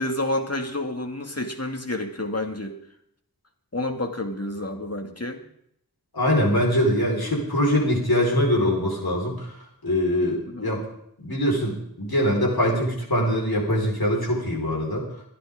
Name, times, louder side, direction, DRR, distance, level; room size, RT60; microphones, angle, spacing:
voice 1, 0.0-2.8 3.7-5.4 10.5-10.7, left 1 dB, 40° left, 4 dB, 2.3 m, -29 dB
voice 2, 6.1-9.5 9.8-10.8 11.2-15.1, equal, 75° left, -1 dB, 4.8 m, -23 dB
26.0 x 10.0 x 3.8 m, 0.71 s
wide cardioid pair, 45°, 37 cm